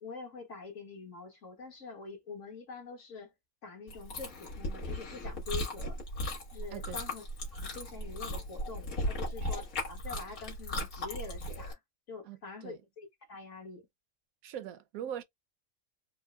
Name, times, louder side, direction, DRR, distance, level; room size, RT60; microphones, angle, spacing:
voice 1, 0.0-3.3 3.6-6.0 6.5-7.2 7.5-11.8 12.1-13.8, left 4 dB, 60° left, 1.7 m, -45 dB
Chewing mastication, 3.9-11.7, left 1 dB, 80° left, 1.9 m, -37 dB
voice 2, 6.7-7.0 9.4-9.5 12.2-12.8 14.4-15.2, right 9 dB, 80° right, 1.0 m, -42 dB
4.5 x 2.0 x 2.3 m
omnidirectional pair, 1.5 m